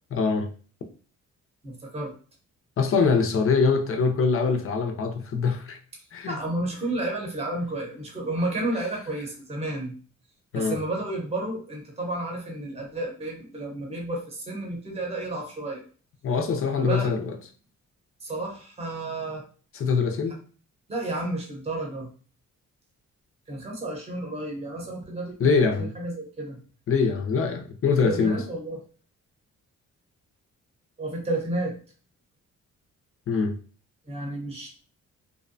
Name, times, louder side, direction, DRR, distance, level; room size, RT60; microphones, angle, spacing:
voice 1, 0.1-0.5 2.8-5.8 6.1-6.4 10.5-10.8 16.2-17.4 19.7-20.4 25.4-25.9 26.9-28.4 33.3-33.5, left 5 dB, 45° left, 5 dB, 0.5 m, -23 dB
voice 2, 1.6-2.1 6.3-9.9 10.5-15.8 16.7-17.1 18.2-19.4 20.9-22.1 23.5-26.6 28.0-28.8 31.0-31.7 34.1-34.7, right 2 dB, 20° right, 0 dB, 0.8 m, -31 dB
2.7 x 2.1 x 2.6 m, 0.40 s
cardioid pair, 110°, 31 cm